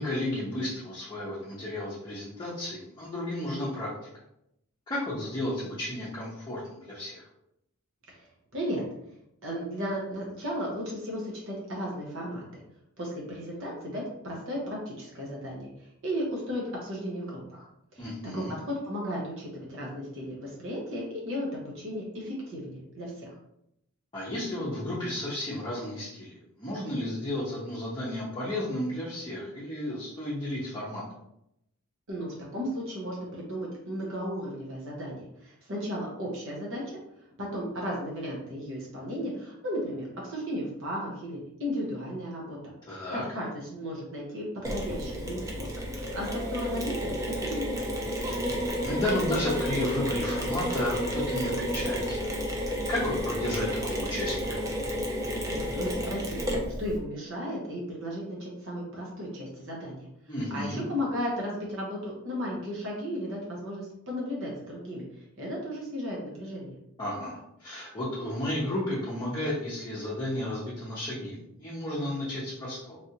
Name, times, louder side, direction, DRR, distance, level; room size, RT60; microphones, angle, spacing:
voice 1, 0.0-3.9 4.9-7.2 18.0-18.5 24.1-31.0 42.9-43.2 48.3-48.4 48.8-52.3 52.9-54.6 60.3-60.8 67.0-73.0, left 1 dB, 20° left, -9 dB, 0.8 m, -33 dB
voice 2, 9.4-12.6 13.0-18.0 18.3-23.3 32.1-37.0 37.4-42.6 42.9-47.8 55.5-56.4 56.8-66.7, equal, 60° right, -3 dB, 0.8 m, -35 dB
Mechanisms, 44.6-57.0, equal, 15° right, 0.4 m, -31 dB
3.3 x 2.5 x 2.8 m, 0.80 s
head